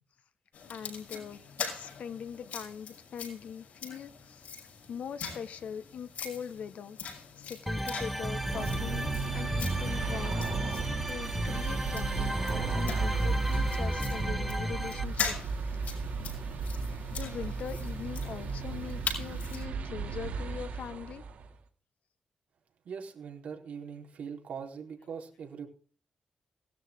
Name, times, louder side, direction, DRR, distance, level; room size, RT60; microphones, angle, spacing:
sound 1, 0.5-19.6, left 6 dB, 90° left, 5.9 m, -42 dB
voice 1, 0.7-1.4 1.7-4.5 4.9-9.1 9.3-15.4 15.7-15.9 16.2-16.3 17.0-21.2, left 7 dB, 70° left, 11 dB, 1.4 m, -42 dB
sound 2, 7.7-15.0, equal, ahead, 1.0 m, -34 dB
sound 3, 8.0-21.5, right 4 dB, 85° right, 2.5 m, -34 dB
voice 2, 22.8-25.7, right 6 dB, 65° right, 1 dB, 4.1 m, -41 dB
18.0 x 13.0 x 3.7 m, 0.41 s
wide cardioid pair, 160°, 3 cm